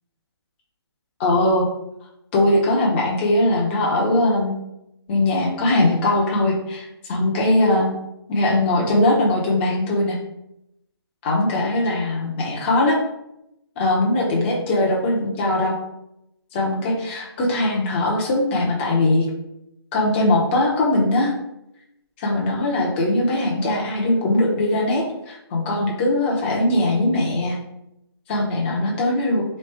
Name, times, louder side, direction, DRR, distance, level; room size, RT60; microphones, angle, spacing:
voice 1, 1.2-1.7 2.3-4.6 5.1-7.9 8.3-10.2 11.2-13.0 13.8-15.7 16.5-19.3 19.9-21.3 22.2-27.6 28.3-29.4, left 1 dB, 25° left, -2 dB, 0.9 m, -20 dB
3.6 x 3.2 x 3.4 m, 0.83 s
hypercardioid pair, 150°, 14 cm